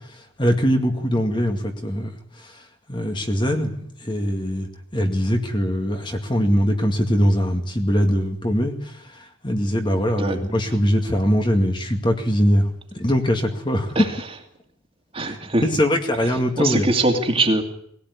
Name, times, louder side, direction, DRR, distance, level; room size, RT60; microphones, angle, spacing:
voice 1, 0.4-2.1 2.4-2.5 2.9-9.0 9.4-12.7 12.9-14.0 15.3-16.9, equal, 25° left, 4 dB, 2.2 m, -22 dB
voice 2, 15.1-15.6 16.2-17.6, right 2 dB, 25° right, 4 dB, 2.4 m, -22 dB
20.0 x 17.5 x 9.7 m, 0.69 s
head